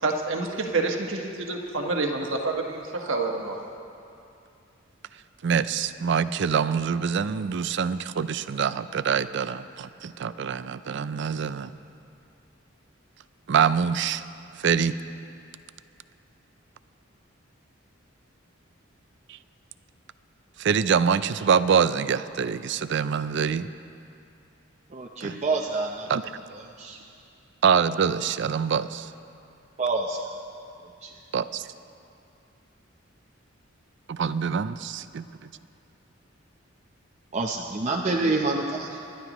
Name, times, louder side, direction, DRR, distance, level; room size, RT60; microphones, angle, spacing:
voice 1, 0.0-3.6, right 3 dB, 80° right, 1 dB, 1.4 m, -28 dB
voice 2, 5.4-11.7 13.5-14.2 14.6-14.9 19.3-19.4 20.6-23.7 25.2-25.4 26.1-26.2 27.6-29.1 31.3-31.7 34.1-35.3, right 6 dB, 65° right, 14 dB, 0.4 m, -25 dB
voice 3, 24.9-26.1 26.8-27.0 29.8-30.2 31.0-31.1 37.3-39.0, right 3 dB, 35° right, -1 dB, 0.7 m, -27 dB
26.5 x 11.5 x 3.0 m, 2.6 s
head